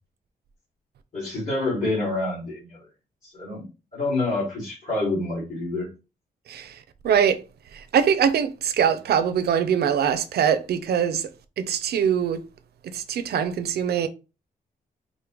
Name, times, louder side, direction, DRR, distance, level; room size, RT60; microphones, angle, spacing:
voice 1, 1.1-2.8 3.2-3.7 3.9-5.9, left 2 dB, 50° left, 2.2 m, -27 dB
voice 2, 7.0-7.4 7.7-11.3 11.6-12.4 12.9-14.1, right 8 dB, 80° right, 0.6 m, -23 dB
5.0 x 2.2 x 3.0 m
cardioid pair, 120°, 16 cm